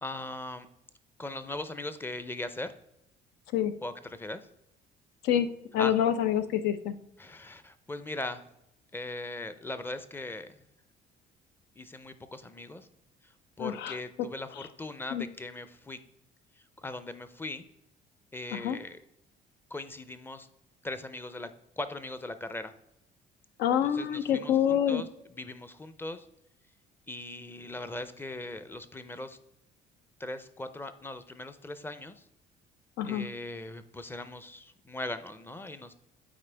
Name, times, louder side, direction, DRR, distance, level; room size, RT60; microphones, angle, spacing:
voice 1, 0.0-0.7 1.2-2.7 3.8-4.5 5.8-5.9 7.2-8.4 8.9-10.6 11.8-12.9 13.2-13.3 13.6-16.0 16.8-17.6 18.3-19.0 19.7-20.5 20.8-21.5 21.8-22.7 23.8-26.3 27.1-29.4 30.2-32.2 33.0-35.9, left 2 dB, 15° left, 11 dB, 0.5 m, -39 dB
voice 2, 5.7-7.0 13.6-14.0 15.1-15.3 18.5-18.8 23.6-25.0 33.0-33.3, left 10 dB, 80° left, 11 dB, 0.6 m, -27 dB
8.7 x 4.3 x 3.3 m, 0.82 s
cardioid pair, 110°, 17 cm